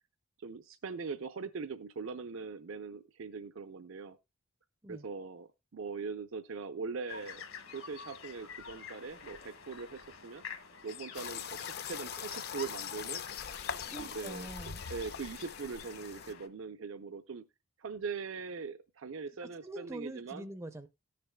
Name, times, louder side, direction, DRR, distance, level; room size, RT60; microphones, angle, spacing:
voice 1, 0.4-4.2 4.9-7.4 7.7-10.4 10.8-11.4 11.8-13.2 13.9-14.5 14.9-17.4 17.8-20.5, right 5 dB, 65° right, 9 dB, 0.5 m, -41 dB
sound 1, 7.1-16.5, left 7 dB, 70° left, 1.4 m, -47 dB
sound 2, 11.1-16.3, left 7 dB, 45° left, 0.5 m, -42 dB
voice 2, 13.9-14.8 19.4-20.9, right 1 dB, 15° right, 11 dB, 0.4 m, -45 dB
18.0 x 6.7 x 2.2 m, 0.24 s
head